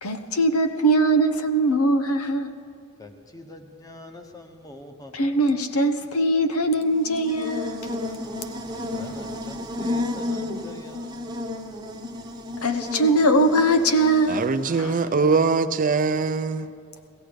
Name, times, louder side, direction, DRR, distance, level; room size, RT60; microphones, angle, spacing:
voice 1, 0.0-2.5 5.1-7.8 12.6-14.4 14.8-15.0, right 1 dB, 85° left, 0.8 m, -21 dB
voice 2, 3.0-5.4 8.9-11.3, left 1 dB, 15° left, 1.0 m, -44 dB
Buzz, 6.8-14.9, left 2 dB, 20° right, 0.9 m, -32 dB
voice 3, 14.3-16.7, right 4 dB, 40° right, 0.5 m, -22 dB
16.5 x 15.5 x 5.1 m
head